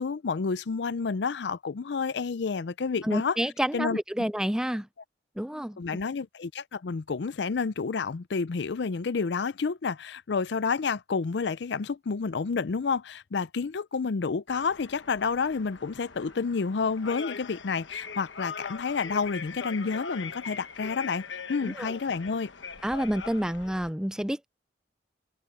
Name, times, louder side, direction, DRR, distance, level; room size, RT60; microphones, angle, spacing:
voice 1, 0.0-3.4 3.7-4.0 5.8-22.5, left 5 dB, 65° left, 0.5 m, -30 dB
voice 2, 3.0-4.9 5.4-6.0 21.6-21.9 22.8-24.5, equal, 5° right, 0.4 m, -29 dB
sound 1, 14.5-23.9, left 5 dB, 80° left, 1.3 m, -41 dB
open air
head